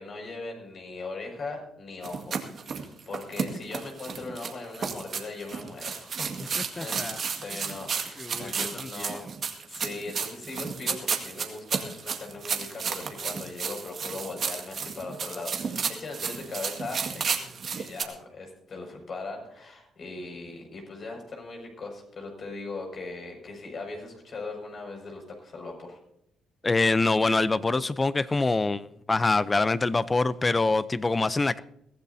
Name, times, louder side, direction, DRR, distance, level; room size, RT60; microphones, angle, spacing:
voice 1, 0.0-9.2 9.6-26.0, left 3 dB, 50° left, 2 dB, 6.2 m, -39 dB
sound 1, 2.0-18.0, right 6 dB, 50° right, 1.9 m, -32 dB
voice 2, 6.6-7.2 8.2-9.2 26.6-31.6, left 3 dB, 25° left, 16 dB, 0.6 m, -25 dB
22.5 x 15.0 x 2.8 m, 0.78 s
cardioid pair, 90°, 0 cm